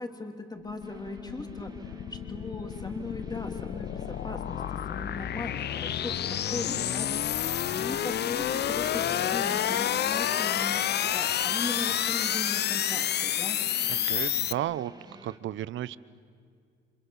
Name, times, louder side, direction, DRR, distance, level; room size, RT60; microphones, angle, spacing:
voice 1, 0.0-1.7 2.1-4.6 4.9-6.2 6.5-7.4 7.7-13.6, left 2 dB, 20° left, 4 dB, 3.0 m, -38 dB
sound 1, 0.6-14.5, left 10 dB, 55° left, 0.6 m, -30 dB
sound 2, 0.8-15.4, right 3 dB, 20° right, 2.4 m, -49 dB
sound 3, 7.6-11.9, right 3 dB, 5° right, 3.4 m, -55 dB
voice 2, 13.9-14.9 15.2-16.0, right 13 dB, 75° right, 17 dB, 0.8 m, -33 dB
30.0 x 26.5 x 7.2 m, 2.3 s
cardioid pair, 90°, 20 cm